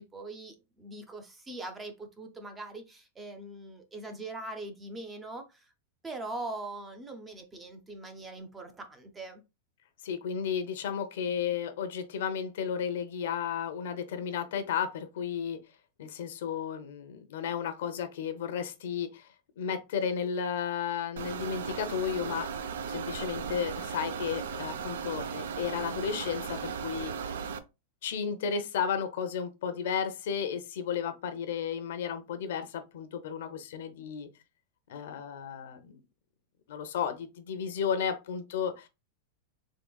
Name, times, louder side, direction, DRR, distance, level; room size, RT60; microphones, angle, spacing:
voice 1, 0.0-5.7 6.0-9.4, right 2 dB, 10° right, 0.4 m, -42 dB
voice 2, 10.0-15.6 16.0-19.3 19.6-22.5 22.9-27.3 28.0-34.3 34.9-36.0 36.7-38.9, left 7 dB, 60° left, 0.6 m, -33 dB
sound 1, 21.2-27.6, right 6 dB, 85° right, 0.5 m, -36 dB
3.7 x 3.3 x 2.3 m
supercardioid pair, 180°, 0 cm